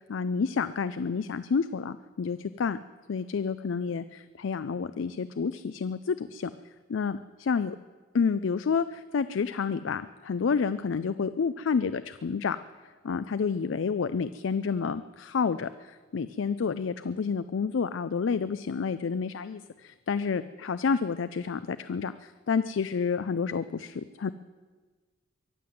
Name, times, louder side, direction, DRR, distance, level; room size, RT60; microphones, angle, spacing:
voice 1, 0.1-2.8 3.1-6.5 6.9-7.8 8.1-12.6 13.0-24.3, left 5 dB, 80° left, 13 dB, 0.4 m, -29 dB
23.0 x 7.9 x 7.7 m, 1.4 s
head